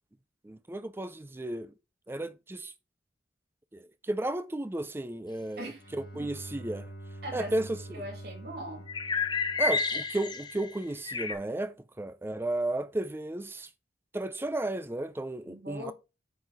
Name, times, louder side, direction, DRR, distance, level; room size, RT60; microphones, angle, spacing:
voice 1, 0.4-1.7 2.1-2.7 3.7-6.9 7.3-8.1 9.6-13.7 14.1-15.9, right 1 dB, 15° right, 0.4 m, -34 dB
Bowed string instrument, 5.5-10.5, right 1 dB, 80° left, 1.9 m, -46 dB
voice 2, 7.2-7.5 7.9-8.9 15.5-15.9, equal, 65° right, 2.8 m, -40 dB
sound 1, 8.9-11.3, left 4 dB, 25° left, 0.9 m, -30 dB
8.3 x 4.5 x 5.0 m
head